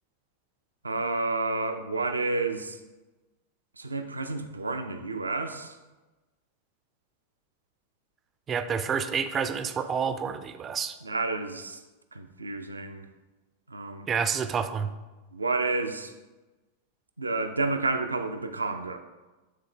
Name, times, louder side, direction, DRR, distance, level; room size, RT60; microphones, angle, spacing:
voice 1, 0.8-2.8 3.8-5.8 11.0-11.8 12.1-13.1 13.7-14.1 15.3-16.1 17.2-19.0, right 3 dB, 80° right, 7 dB, 0.4 m, -30 dB
voice 2, 8.5-11.0 14.1-14.9, right 6 dB, 25° right, 10 dB, 0.4 m, -29 dB
9.2 x 3.7 x 3.2 m, 1.2 s
figure-of-eight pair, 90°, 0 cm